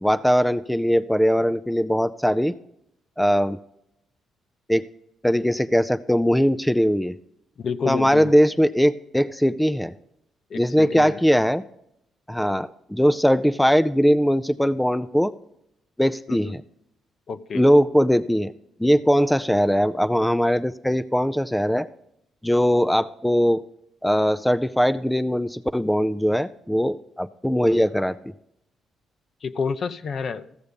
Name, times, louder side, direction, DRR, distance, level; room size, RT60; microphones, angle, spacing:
voice 1, 0.0-2.6 3.2-3.6 4.7-4.9 5.2-7.2 7.9-9.9 10.5-11.6 12.3-15.3 16.0-16.6 17.5-18.5 18.8-21.9 22.4-23.6 24.0-28.2, equal, 5° left, 11 dB, 0.4 m, -20 dB
voice 2, 7.6-8.3 10.5-11.2 16.3-16.6 17.3-17.6 29.4-30.5, left 5 dB, 50° left, 12 dB, 0.7 m, -29 dB
14.5 x 6.8 x 5.2 m, 0.79 s
cardioid pair, 90°, 0 cm